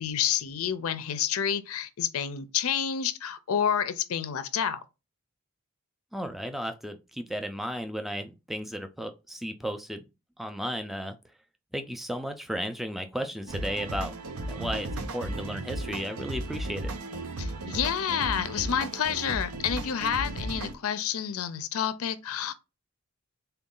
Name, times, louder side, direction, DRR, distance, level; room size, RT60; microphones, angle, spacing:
voice 1, 0.0-4.8 17.4-22.5, left 8 dB, 75° left, 0.4 m, -29 dB
voice 2, 6.1-10.0 10.4-11.2 11.7-14.1 14.5-16.9, equal, ahead, 0.3 m, -34 dB
sound 1, 13.5-20.7, right 2 dB, 75° right, 0.6 m, -35 dB
3.9 x 2.3 x 3.7 m
head